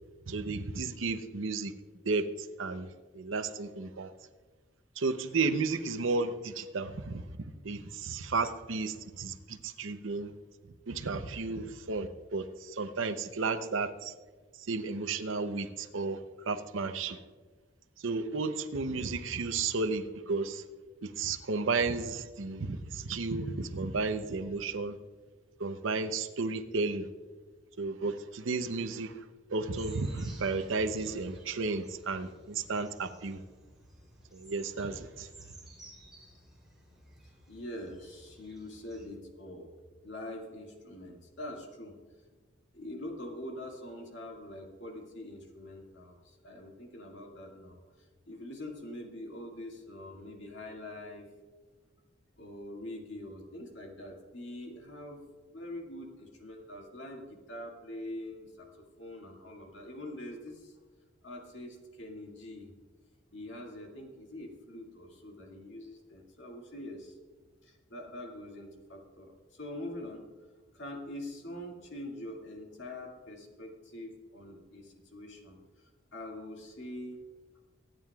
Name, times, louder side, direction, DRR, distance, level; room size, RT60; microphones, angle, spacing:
voice 1, 0.3-1.7 2.0-2.9 3.1-4.1 5.0-7.2 7.6-10.3 10.9-14.1 14.7-16.2 16.5-17.2 18.0-20.6 21.0-25.0 25.6-27.1 27.8-29.1 29.5-33.4 34.3-35.3, right 3 dB, 80° right, 10 dB, 0.7 m, -33 dB
sound 1, 29.7-39.1, right 2 dB, ahead, 3.4 m, -56 dB
voice 2, 37.5-39.8 40.0-41.9 42.7-51.3 52.4-55.2 55.5-60.8 61.2-62.7 63.3-67.2 67.6-70.3 70.7-77.2, left 1 dB, 65° left, 0 dB, 2.2 m, -44 dB
24.0 x 9.2 x 2.4 m, 1.4 s
head